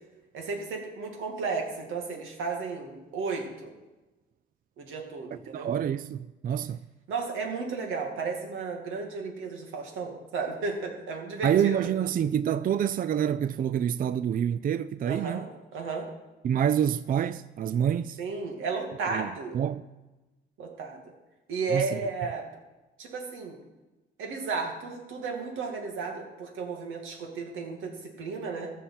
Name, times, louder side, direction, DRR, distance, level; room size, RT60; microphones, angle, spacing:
voice 1, 0.3-3.7 4.8-5.7 7.1-11.8 15.1-16.1 18.2-19.6 20.6-21.0 21.5-22.4 23.0-23.6 24.2-28.7, right 4 dB, 85° right, 2.4 m, -33 dB
voice 2, 5.5-6.8 11.4-15.4 16.4-18.2 19.1-19.3 19.5-19.8 21.7-22.0, right 9 dB, 45° right, 0.4 m, -27 dB
14.0 x 5.6 x 7.5 m
cardioid pair, 90°, 20 cm